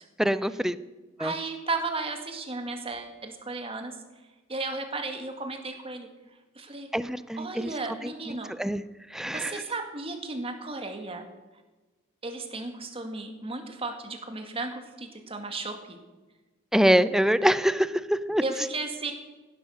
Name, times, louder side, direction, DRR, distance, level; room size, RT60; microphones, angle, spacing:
voice 1, 0.2-0.8 1.2-1.3 6.9-7.7 8.0-8.8 9.1-9.6 16.7-18.4, equal, ahead, 15 dB, 0.5 m, -25 dB
voice 2, 1.2-3.9 4.5-6.1 6.6-6.9 7.4-8.5 9.3-11.3 12.2-16.0 18.4-19.1, right 3 dB, 30° right, 5 dB, 2.1 m, -34 dB
16.5 x 11.5 x 6.4 m, 1.2 s
head